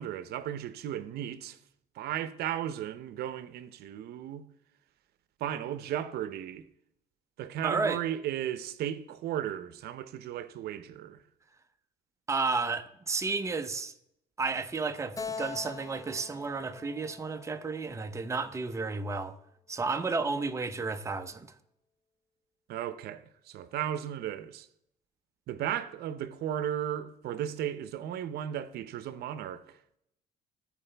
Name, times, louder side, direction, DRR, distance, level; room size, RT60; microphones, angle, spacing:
voice 1, 0.0-1.6 2.0-4.4 5.4-6.6 7.4-11.2 22.7-24.7 25.5-29.8, right 10 dB, 70° right, 0.7 m, -35 dB
voice 2, 7.6-8.0 12.3-13.9 14.4-19.3 19.7-21.5, right 4 dB, 15° right, 0.6 m, -32 dB
Keyboard (musical), 15.2-18.6, left 5 dB, 20° left, 0.7 m, -43 dB
14.0 x 4.9 x 3.4 m
cardioid pair, 110°, 17 cm